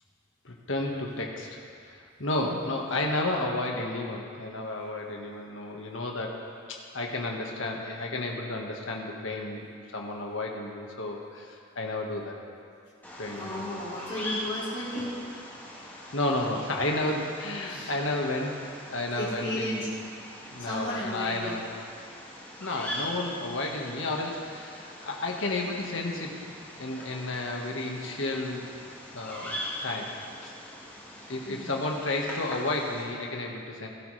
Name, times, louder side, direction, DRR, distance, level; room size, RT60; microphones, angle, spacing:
voice 1, 0.4-1.6 1.9-6.4 6.7-12.3 13.2-13.6 16.1-18.6 18.9-19.9 20.5-21.6 22.6-26.4 26.8-28.6 29.1-30.1 30.4-30.5 31.3-33.9, left 2 dB, 75° left, 0 dB, 1.6 m, -32 dB
Bird vocalization bird call bird song, 13.0-33.0, left 1 dB, 10° left, 2.2 m, -41 dB
voice 2, 13.4-15.2 17.7-17.9 19.2-19.9 20.6-21.6 31.5-31.8, left 1 dB, 25° left, -11 dB, 4.0 m, -34 dB
18.5 x 12.0 x 3.4 m, 2.3 s
head